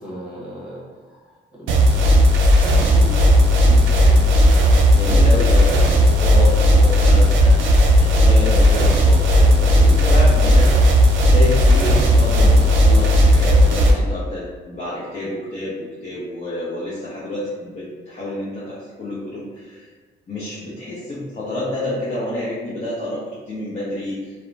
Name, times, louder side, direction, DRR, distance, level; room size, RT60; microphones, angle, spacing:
voice 1, 0.0-4.3, equal, 5° right, -7 dB, 1.2 m, -36 dB
sound 1, 1.7-13.9, equal, 70° right, 0.5 m, -14 dB
voice 2, 4.9-7.5 8.0-10.7 11.2-19.9 20.3-23.2 23.5-24.2, left 1 dB, 35° left, -10 dB, 0.8 m, -28 dB
2.8 x 2.1 x 2.5 m, 1.4 s
cardioid pair, 90°, 20 cm